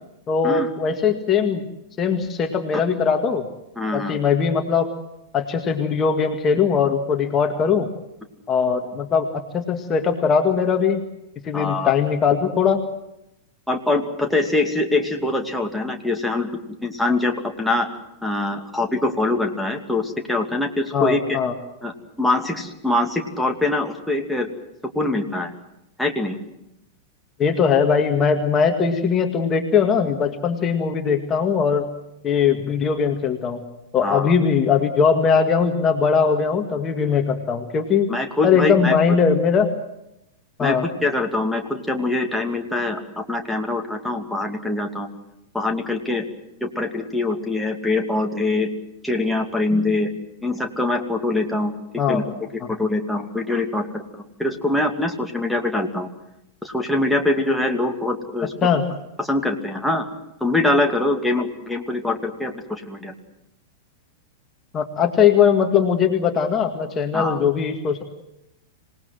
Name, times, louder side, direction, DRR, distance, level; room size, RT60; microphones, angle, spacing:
voice 1, 0.3-1.6 2.0-3.4 3.9-4.9 5.3-7.9 8.5-11.0 11.4-12.8 20.9-21.5 27.4-31.9 32.2-33.6 33.9-38.1 38.4-39.7 40.6-40.9 52.0-52.2 58.6-58.8 64.7-68.0, left 6 dB, 25° left, 5 dB, 2.0 m, -20 dB
voice 2, 3.8-4.2 11.5-11.9 13.7-16.5 16.8-17.9 18.2-21.4 21.8-24.5 24.9-25.5 26.0-26.4 34.0-34.3 38.1-38.9 40.6-45.1 45.5-46.2 46.6-48.7 49.0-50.1 50.4-51.8 52.1-52.2 52.7-56.1 56.6-58.5 59.2-60.1 60.4-63.1 67.1-67.4, left 2 dB, ahead, 1 dB, 2.6 m, -23 dB
26.5 x 19.0 x 7.7 m, 0.85 s
figure-of-eight pair, 95°, 0 cm